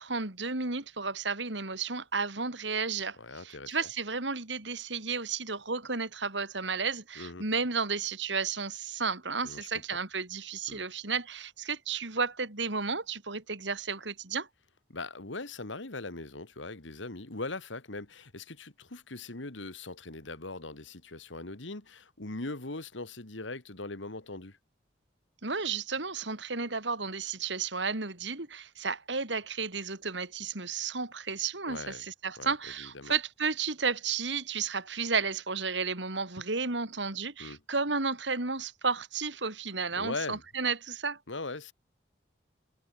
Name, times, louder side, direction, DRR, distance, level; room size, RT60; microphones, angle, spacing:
voice 1, 0.0-14.5 25.4-41.2, right 5 dB, 75° right, 3.2 m, -33 dB
voice 2, 3.2-3.8 7.2-7.4 9.4-9.7 10.7-10.8 14.9-24.6 31.7-32.0 32.4-32.5 32.8-33.1 37.4-37.6 39.9-40.4 41.3-41.7, left 2 dB, 85° left, 2.3 m, -40 dB
head